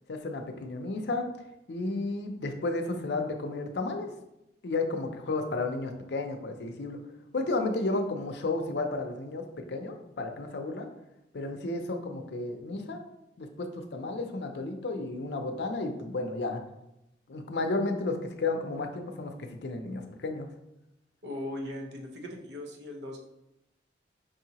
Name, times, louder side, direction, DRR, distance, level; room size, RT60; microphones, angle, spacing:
voice 1, 0.1-1.3 1.7-4.1 4.6-7.0 7.3-10.9 11.3-13.0 13.4-16.6 17.3-20.5, left 2 dB, 70° left, 5 dB, 0.5 m, -32 dB
voice 2, 21.2-23.2, left 1 dB, 75° right, 1 dB, 0.8 m, -38 dB
5.3 x 2.7 x 2.9 m, 0.88 s
head